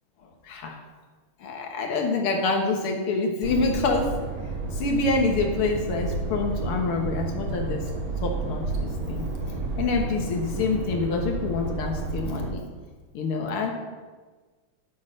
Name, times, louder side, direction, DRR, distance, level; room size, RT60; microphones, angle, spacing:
voice 1, 0.4-0.8 1.4-4.1 4.7-7.9 8.2-9.3 9.8-12.6 13.1-13.7, left 3 dB, 80° left, 2 dB, 2.2 m, -26 dB
sound 1, 3.4-12.5, right 3 dB, 70° right, 2.1 m, -31 dB
11.0 x 5.9 x 6.5 m, 1.3 s
omnidirectional pair, 2.4 m